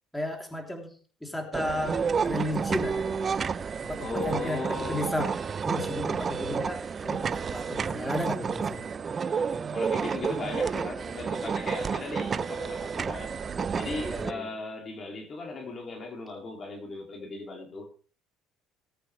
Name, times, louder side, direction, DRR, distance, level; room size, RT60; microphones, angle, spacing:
voice 1, 0.1-0.9 1.2-3.3 3.8-5.3 5.6-8.8 14.0-14.5, left 1 dB, 5° left, 3.3 m, -34 dB
sound 1, 1.5-14.3, right 6 dB, 30° right, 0.6 m, -30 dB
voice 2, 4.0-5.1 9.3-9.4 9.7-13.4 13.8-17.9, left 3 dB, 35° left, 2.8 m, -37 dB
19.5 x 8.9 x 3.3 m
cardioid pair, 110°, 0 cm